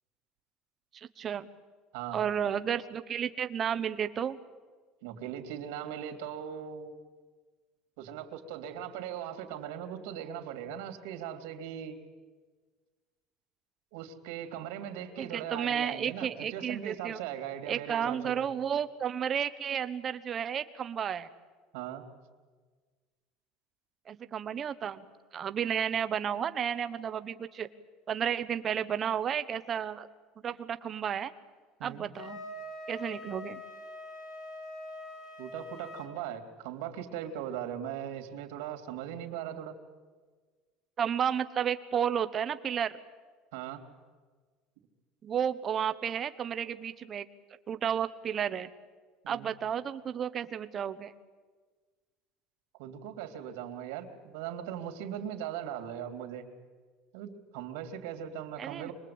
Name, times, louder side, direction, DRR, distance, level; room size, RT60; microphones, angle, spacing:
voice 1, 0.9-1.5 2.1-4.4 15.2-17.2 17.7-21.3 24.1-25.1 25.3-27.7 28.1-30.1 30.4-31.3 31.8-32.4 32.9-33.6 41.0-42.9 45.2-47.3 47.7-48.7 49.3-51.1 58.6-58.9, right 8 dB, 25° right, 12 dB, 1.0 m, -32 dB
voice 2, 5.0-7.0 8.0-11.9 13.9-18.4 21.7-22.0 31.8-32.1 35.4-39.8 43.5-43.8 49.2-49.5 52.8-56.5 57.1-58.9, right 9 dB, 85° right, 6 dB, 3.1 m, -39 dB
Wind instrument woodwind instrument, 32.1-36.1, left 1 dB, 50° left, 4.8 m, -43 dB
26.5 x 22.0 x 8.8 m, 1.4 s
cardioid pair, 175°, 0 cm